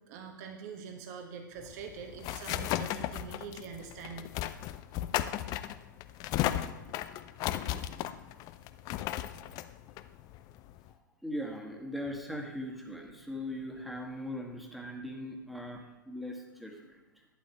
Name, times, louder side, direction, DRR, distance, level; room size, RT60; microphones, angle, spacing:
voice 1, 0.1-4.3, right 6 dB, 50° right, 4 dB, 1.3 m, -44 dB
sound 1, 1.6-10.9, left 13 dB, 35° left, 0.4 m, -35 dB
voice 2, 10.9-17.3, left 1 dB, ahead, 1 dB, 1.5 m, -40 dB
11.5 x 8.7 x 2.9 m, 1.1 s
hypercardioid pair, 105°, 11 cm